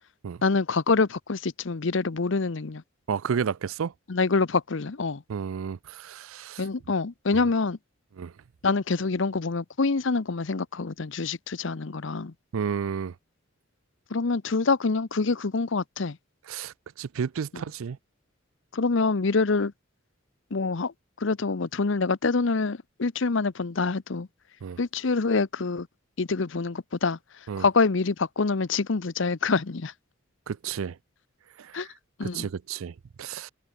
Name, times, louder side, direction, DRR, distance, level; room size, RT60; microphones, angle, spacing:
voice 1, 0.4-2.8 4.1-5.2 6.6-7.8 8.6-12.3 14.1-16.2 17.5-17.6 18.7-19.7 20.5-24.3 24.8-25.9 26.2-27.2 27.6-29.9 31.7-31.9 32.2-32.5, left 4 dB, 65° left, 0.7 m, -26 dB
voice 2, 3.1-3.9 5.3-6.6 7.3-7.4 8.2-8.3 12.5-13.1 16.5-18.0 24.6-24.8 27.5-27.6 30.5-31.0 31.6-31.9 32.2-33.5, right 6 dB, 80° right, 0.4 m, -32 dB
open air
head